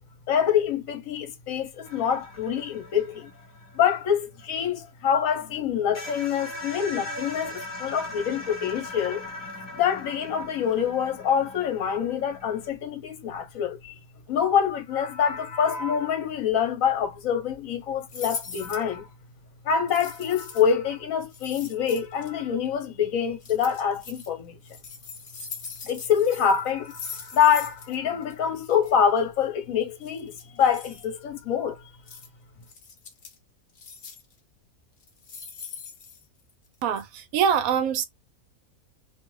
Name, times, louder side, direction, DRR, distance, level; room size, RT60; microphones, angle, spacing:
voice 1, 0.3-3.3 3.7-9.3 9.7-14.0 14.3-19.1 19.6-24.6 25.9-31.8, left 8 dB, 70° left, 1.1 m, -25 dB
sound 1, 1.8-5.2 5.6-5.7 5.9-12.7, left 1 dB, 20° left, 0.9 m, -40 dB
sound 2, 18.1-18.9 19.9-20.7 21.3-22.3 23.4-24.3 24.6-28.0 28.2-28.3 28.6-28.9 30.0-31.1 32.1-32.3 32.6-33.4 33.8-34.3 35.0-36.7 37.0-37.1, left 5 dB, 50° left, 0.9 m, -41 dB
voice 2, 36.8-38.0, right 8 dB, 75° right, 1.0 m, -24 dB
2.6 x 2.4 x 3.0 m
omnidirectional pair, 1.5 m